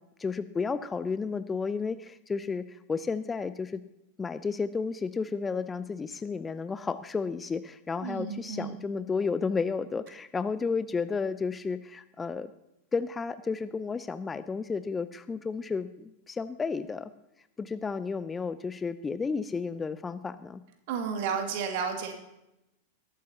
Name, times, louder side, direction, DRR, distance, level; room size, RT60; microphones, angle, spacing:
voice 1, 0.2-3.8 4.2-12.5 12.9-17.1 17.6-20.6, left 5 dB, 15° left, 13 dB, 0.5 m, -32 dB
voice 2, 8.0-8.8 20.9-22.2, right 6 dB, 50° right, 4 dB, 2.4 m, -32 dB
21.5 x 12.0 x 2.9 m, 0.88 s
figure-of-eight pair, 90°, 0 cm